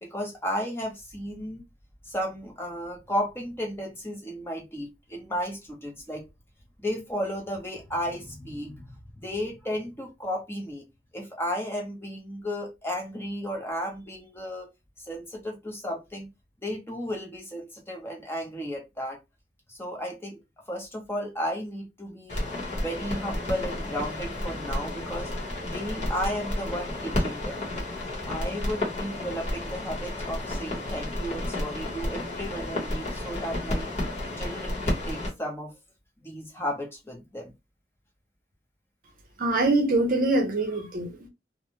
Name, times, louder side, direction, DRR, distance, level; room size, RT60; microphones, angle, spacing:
voice 1, 0.0-1.6 2.1-6.2 6.8-8.8 9.2-10.8 11.1-14.7 15.1-16.3 16.6-19.2 19.7-20.4 20.7-22.5 22.8-25.3 25.7-27.6 28.3-33.9 34.4-35.8 36.2-37.5, equal, 15° left, 0.7 m, -34 dB
sound 1, 22.3-35.3, left 1 dB, 40° left, 1.1 m, -31 dB
voice 2, 39.4-41.3, right 2 dB, 50° right, 0.7 m, -24 dB
2.5 x 2.2 x 2.9 m
head